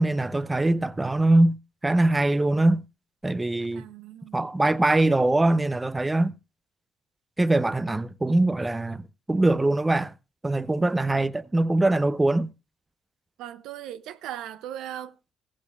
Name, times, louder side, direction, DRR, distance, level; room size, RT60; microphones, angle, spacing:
voice 1, 0.0-1.6 1.8-2.8 3.2-3.8 4.3-6.3 7.4-9.0 9.3-10.1 10.4-12.5, right 2 dB, 15° right, 0.6 m, -22 dB
voice 2, 3.7-4.4 13.4-15.3, right 11 dB, 90° right, 0.6 m, -38 dB
15.5 x 14.5 x 2.4 m
cardioid pair, 90°, 0 cm